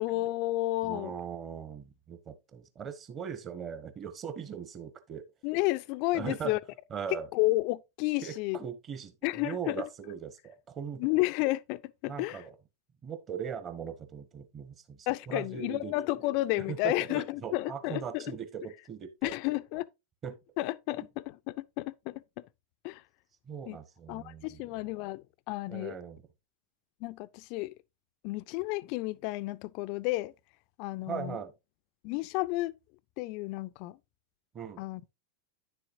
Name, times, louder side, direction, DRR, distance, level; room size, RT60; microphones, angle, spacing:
voice 1, 0.0-1.1 5.4-6.6 7.3-8.6 9.2-9.8 11.0-12.4 15.1-18.3 19.2-19.9 20.6-22.4 22.8-23.0 23.7-23.8 24.1-26.0 27.0-27.7 28.2-30.3 30.8-31.4 32.0-32.7 33.2-34.0 34.8-35.0, left 19 dB, 45° left, 0.4 m, -31 dB
voice 2, 0.8-5.2 6.1-6.6 6.9-7.3 8.2-11.1 12.0-12.5 13.0-15.9 16.7-19.3 20.2-20.4 23.4-24.6 25.7-26.2 31.1-31.5 34.5-34.8, right 7 dB, 25° right, 1.2 m, -39 dB
9.9 x 6.8 x 2.6 m
figure-of-eight pair, 90°, 0 cm